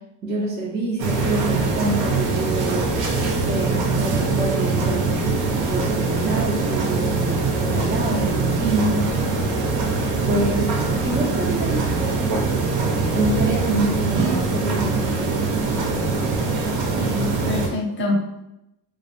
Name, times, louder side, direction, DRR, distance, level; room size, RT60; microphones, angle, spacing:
voice 1, 0.2-3.0 3.3-5.3 5.5-9.0 10.3-10.6 11.0-12.4 13.0-15.5, right 2 dB, 25° right, -2 dB, 0.3 m, -26 dB
sound 1, 1.0-17.7, right 3 dB, 70° right, 0.7 m, -22 dB
voice 2, 10.2-10.5 17.0-18.4, left 1 dB, 25° left, -1 dB, 0.6 m, -26 dB
2.5 x 2.0 x 2.8 m, 0.89 s
cardioid pair, 105°, 47 cm